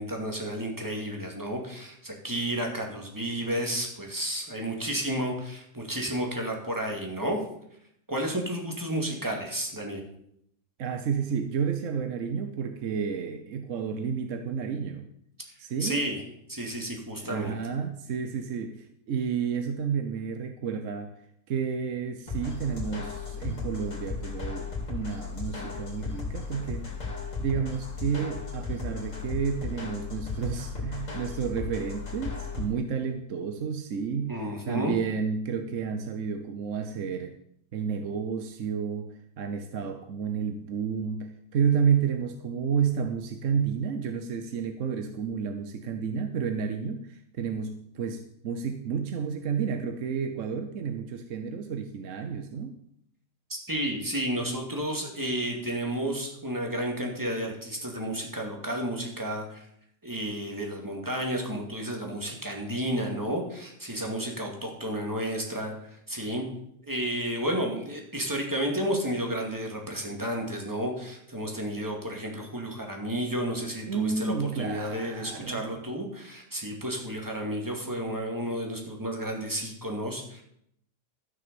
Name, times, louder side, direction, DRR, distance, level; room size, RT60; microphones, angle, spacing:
voice 1, 0.0-7.4 8.1-10.0 15.8-16.2 16.5-17.6 34.3-35.0 53.5-59.6 60.0-65.7 66.1-66.4 66.8-80.4, right 1 dB, 10° right, 1 dB, 2.2 m, -32 dB
voice 2, 10.8-15.1 15.6-16.0 17.2-21.1 21.5-26.9 27.4-34.4 34.6-37.4 37.7-52.8 73.9-75.8, right 6 dB, 55° right, 7 dB, 1.1 m, -31 dB
sound 1, 22.3-32.7, left 4 dB, 50° left, 3.3 m, -35 dB
13.0 x 6.5 x 6.9 m, 0.72 s
omnidirectional pair, 1.8 m